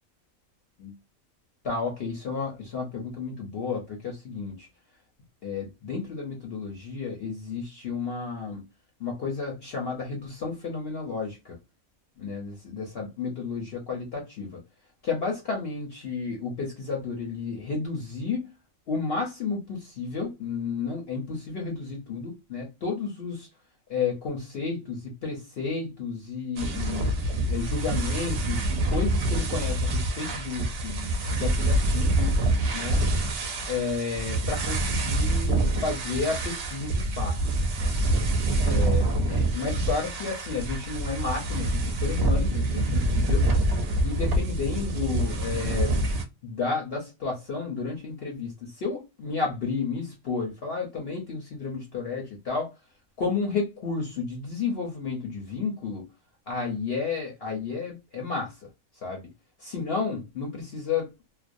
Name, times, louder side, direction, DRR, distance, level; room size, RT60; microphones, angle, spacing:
voice 1, 1.6-4.7 5.4-8.6 9.0-11.6 12.2-14.6 15.0-18.5 18.9-23.5 23.9-27.1 27.4-32.4 32.7-33.0 33.7-37.4 37.8-37.9 38.6-43.5 44.0-45.9 46.4-52.7 53.2-56.1 56.5-58.7 58.9-59.3 59.6-61.1, left 4 dB, 55° left, 0.7 m, -32 dB
sound 1, 26.6-46.2, right 1 dB, 60° right, 0.7 m, -26 dB
2.4 x 2.1 x 2.5 m
omnidirectional pair, 1.4 m